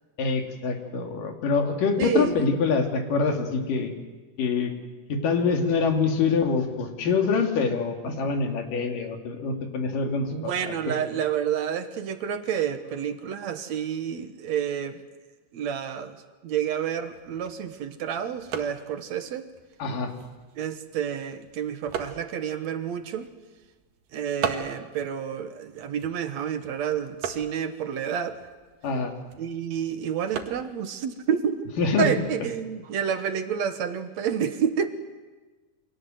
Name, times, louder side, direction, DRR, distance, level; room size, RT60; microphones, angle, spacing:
voice 1, 0.2-3.9 4.4-4.7 5.1-10.3 10.6-10.7 19.8-20.1 28.8-29.1 31.8-32.1, left 4 dB, 85° left, 4 dB, 4.3 m, -25 dB
voice 2, 2.0-2.4 10.3-15.0 15.5-16.2 16.4-19.5 20.6-23.3 24.1-28.4 29.4-31.7 32.0-34.9, right 8 dB, 65° right, 9 dB, 2.3 m, -29 dB
sound 1, 17.0-32.5, right 7 dB, 85° right, 3.4 m, -40 dB
29.0 x 25.0 x 7.8 m, 1.3 s
omnidirectional pair, 3.7 m